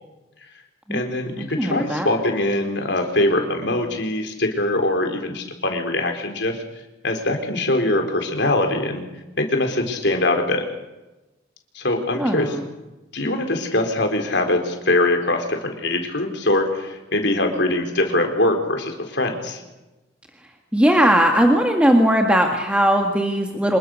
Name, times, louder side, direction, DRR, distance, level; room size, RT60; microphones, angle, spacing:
voice 1, 0.9-6.6 7.0-9.0 9.4-10.6 11.7-12.6 13.1-19.6, left 1 dB, 60° left, 4 dB, 4.2 m, -22 dB
voice 2, 1.6-2.1 12.1-12.6 20.7-23.8, equal, 5° right, 2 dB, 1.8 m, -18 dB
26.5 x 21.5 x 6.5 m, 1.0 s
head